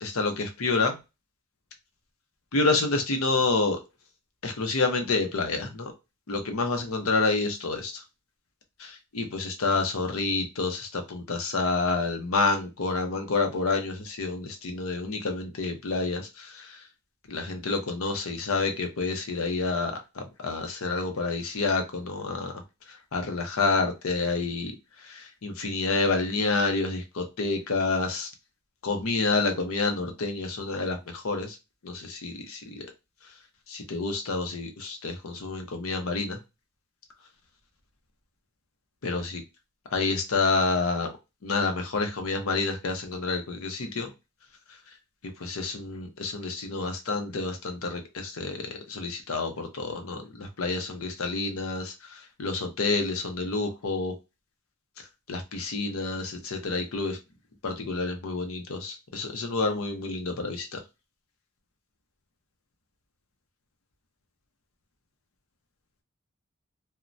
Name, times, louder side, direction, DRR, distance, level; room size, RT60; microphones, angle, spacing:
voice 1, 0.0-1.0 2.5-3.8 4.4-5.9 6.3-8.0 8.8-16.8 17.3-22.5 23.1-24.7 25.1-28.3 28.8-31.6 31.8-32.9 33.7-36.4 39.0-39.4 39.9-41.1 41.4-44.1 45.4-54.1 55.3-57.2 57.6-60.8, left 3 dB, 90° left, 0.6 m, -28 dB
3.0 x 2.1 x 2.6 m
head